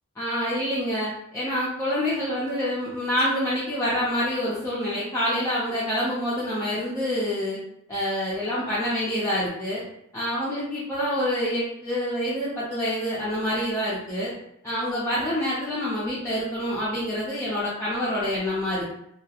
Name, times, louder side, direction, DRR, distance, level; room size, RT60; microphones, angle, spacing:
voice 1, 0.2-7.6 7.9-9.8 10.1-14.3 14.6-18.9, equal, 15° left, -9 dB, 0.5 m, -27 dB
2.3 x 2.0 x 2.8 m, 0.78 s
head